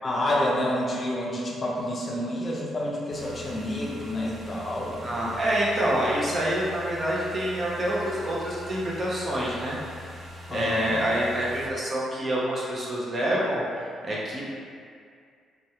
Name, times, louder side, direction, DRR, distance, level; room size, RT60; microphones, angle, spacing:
voice 1, 0.0-5.0 10.5-10.9, left 1 dB, 35° left, -4 dB, 0.5 m, -28 dB
sound 1, 3.1-11.7, left 1 dB, 15° right, 1.4 m, -43 dB
voice 2, 5.0-9.8 10.5-13.6 14.0-14.4, right 1 dB, 40° right, -6 dB, 0.7 m, -27 dB
3.0 x 2.3 x 2.8 m, 2.2 s
cardioid pair, 90°, 0 cm